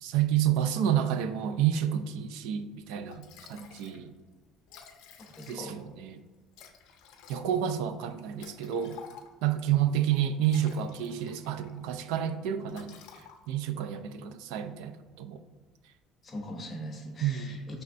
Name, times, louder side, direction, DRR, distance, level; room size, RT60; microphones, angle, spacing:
voice 1, 0.0-4.1 5.5-6.2 7.3-9.0 9.4-13.0 13.5-15.4 17.2-17.5, right 10 dB, 80° right, 10 dB, 0.3 m, -29 dB
Liquid, 2.7-2.8 3.1-4.0 4.3-4.4 4.6-5.9 6.5-9.6 10.2-11.8 12.1-12.3 12.7-13.7, left 7 dB, 75° left, 0.5 m, -52 dB
voice 2, 5.4-5.8 16.2-17.8, equal, 25° left, 2 dB, 0.7 m, -40 dB
5.3 x 3.3 x 2.5 m, 1.3 s
cardioid pair, 155°, 0 cm